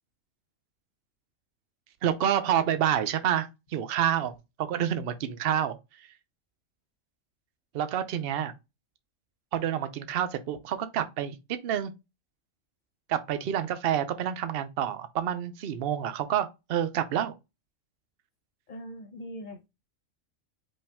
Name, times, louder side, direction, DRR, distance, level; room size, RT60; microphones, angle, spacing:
voice 1, 2.0-6.1 7.7-8.5 9.5-11.9 13.1-17.3, right 10 dB, 55° right, 0.8 m, -28 dB
voice 2, 18.7-19.7, equal, 40° left, 0.8 m, -41 dB
5.4 x 2.6 x 3.5 m
omnidirectional pair, 1.4 m